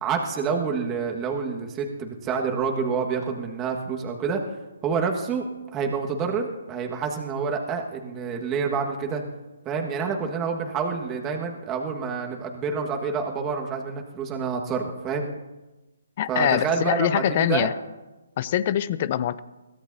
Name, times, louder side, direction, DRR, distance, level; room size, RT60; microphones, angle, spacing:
voice 1, 0.0-4.4 4.8-9.2 9.6-15.3 16.3-17.7, right 5 dB, 20° right, 2 dB, 1.6 m, -28 dB
voice 2, 16.2-17.7 18.4-19.4, left 11 dB, 40° left, 16 dB, 0.6 m, -24 dB
22.5 x 16.0 x 2.8 m, 1.1 s
figure-of-eight pair, 140°, 0 cm